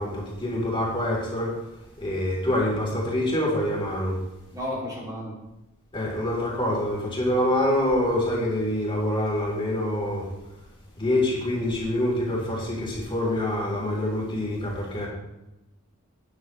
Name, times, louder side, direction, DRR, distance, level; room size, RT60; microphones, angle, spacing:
voice 1, 0.0-1.5 2.0-4.2 5.9-10.2 11.0-15.1, left 1 dB, 25° left, -4 dB, 3.7 m, -26 dB
voice 2, 4.5-5.4, left 1 dB, 20° right, -5 dB, 2.9 m, -32 dB
13.5 x 9.7 x 3.3 m, 0.93 s
head